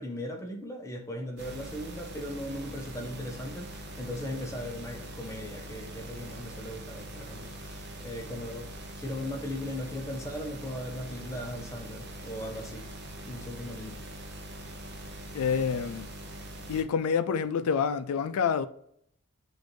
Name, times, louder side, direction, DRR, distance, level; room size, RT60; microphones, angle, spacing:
voice 1, 0.0-8.7 9.0-12.9 13.2-14.0, left 1 dB, 15° left, 0.6 m, -38 dB
sound 1, 1.4-16.8, right 1 dB, 50° right, 0.7 m, -43 dB
voice 2, 15.3-16.1 16.7-18.7, left 6 dB, 90° left, 0.3 m, -27 dB
6.2 x 2.6 x 3.1 m
head